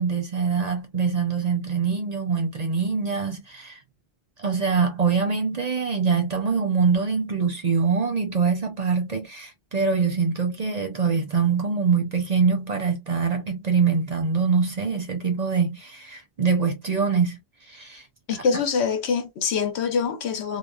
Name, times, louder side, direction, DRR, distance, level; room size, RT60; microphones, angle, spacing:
voice 1, 0.0-3.8 4.4-17.4 17.7-18.0, right 5 dB, 45° right, 0.7 m, -24 dB
voice 2, 18.3-20.6, left 6 dB, 75° left, 1.0 m, -24 dB
3.3 x 2.2 x 2.3 m
omnidirectional pair, 1.1 m